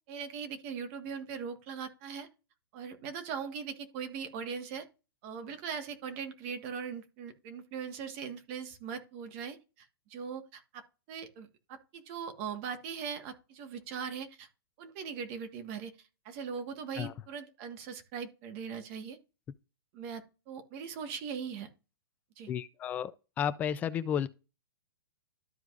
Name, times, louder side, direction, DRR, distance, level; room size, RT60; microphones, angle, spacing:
voice 1, 0.1-2.3 2.7-4.9 5.2-10.8 11.1-14.5 14.8-15.9 16.2-19.2 19.9-21.7 22.4-22.5, right 6 dB, 30° right, 1.5 m, -40 dB
voice 2, 22.5-23.1 23.4-24.3, left 9 dB, 15° left, 0.3 m, -32 dB
13.5 x 4.7 x 2.5 m
hypercardioid pair, 160°, 12 cm